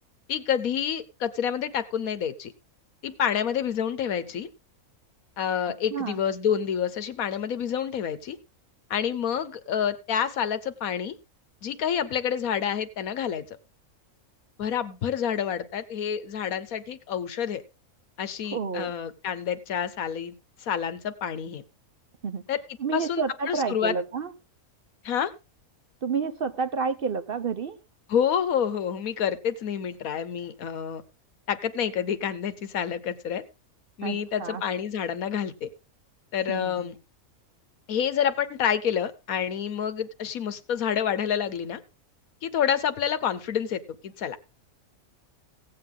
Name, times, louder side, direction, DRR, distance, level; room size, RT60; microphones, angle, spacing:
voice 1, 0.3-2.5 3.0-4.5 5.4-8.4 8.9-11.1 11.6-13.4 14.6-17.6 18.2-20.3 20.6-21.6 22.5-22.6 22.9-23.9 25.0-25.3 28.1-31.0 31.5-33.4 34.0-35.7 36.3-37.0 37.9-41.8 42.4-44.4, left 8 dB, 85° left, 1.4 m, -28 dB
voice 2, 18.5-18.9 22.2-22.4 22.8-24.3 26.0-27.8 34.0-34.6 36.5-36.9, right 5 dB, 50° right, 0.8 m, -30 dB
16.5 x 7.8 x 3.8 m
omnidirectional pair, 1.5 m